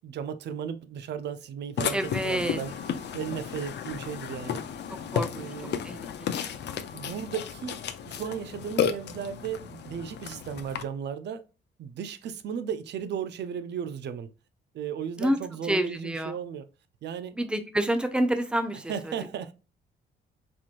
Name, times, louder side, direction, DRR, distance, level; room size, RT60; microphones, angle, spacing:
voice 1, 0.0-2.8 3.1-4.7 5.3-5.8 6.9-7.8 8.1-11.4 11.8-14.3 14.7-16.7 17.0-17.4 18.9-19.5, right 7 dB, 60° right, 0.5 m, -35 dB
Burping eructation, 1.8-10.8, left 8 dB, 60° left, 0.5 m, -33 dB
voice 2, 1.9-2.6 5.1-5.5 5.8-6.6 15.2-15.4 15.7-16.4 17.3-18.9, right 1 dB, 5° right, 0.6 m, -28 dB
4.3 x 3.0 x 2.5 m
cardioid pair, 90°, 20 cm